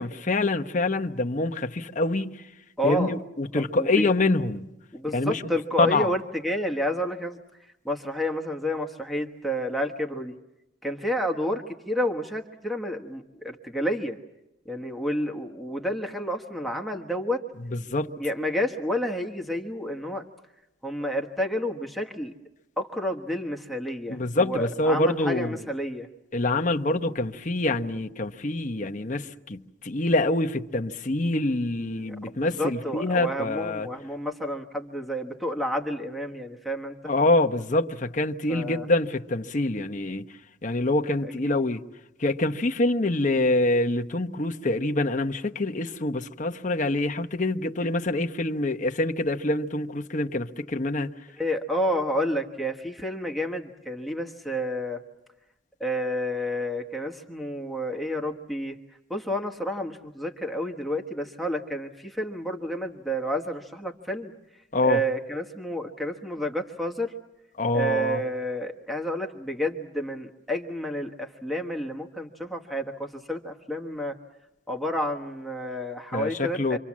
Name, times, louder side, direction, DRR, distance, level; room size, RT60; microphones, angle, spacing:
voice 1, 0.0-2.4 2.8-4.7 5.1-5.4 5.8-6.1 17.7-18.1 24.1-25.6 26.3-33.9 37.0-40.2 40.6-41.8 42.2-51.1 64.7-65.0 67.6-68.2 76.1-76.8, left 2 dB, 40° left, 1.0 m, -25 dB
voice 2, 2.8-3.1 3.5-4.1 4.9-10.4 10.8-14.2 14.6-17.4 18.2-20.2 20.8-22.3 22.8-26.1 32.1-36.9 38.5-38.9 41.2-41.5 51.4-55.0 55.8-58.8 59.1-64.3 64.8-67.1 67.7-74.1 74.7-76.8, equal, ahead, 1.4 m, -30 dB
28.0 x 24.5 x 7.4 m
head